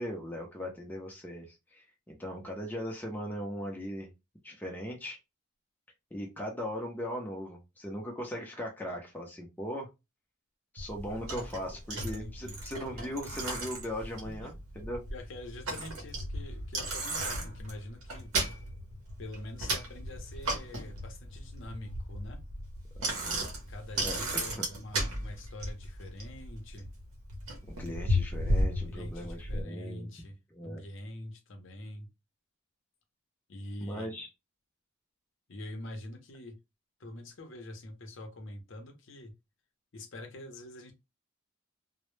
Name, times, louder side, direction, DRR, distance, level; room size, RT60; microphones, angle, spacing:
voice 1, 0.0-4.1 4.4-5.2 6.1-9.9 10.7-15.0 23.0-23.4 24.0-24.2 24.6-24.7 27.7-30.1 30.5-30.8 33.8-34.3, equal, 10° left, 0 dB, 0.4 m, -39 dB
Bicycle, 10.8-29.6, right 1 dB, 85° right, 0.7 m, -35 dB
voice 2, 11.1-11.5 11.9-12.6 14.2-14.5 15.1-18.3 19.2-22.4 23.7-26.9 28.9-30.3 30.6-32.1 33.5-34.2 35.5-36.6 37.0-39.3 39.9-40.9, left 1 dB, 60° left, 5 dB, 0.6 m, -45 dB
2.0 x 2.0 x 3.0 m, 0.24 s
head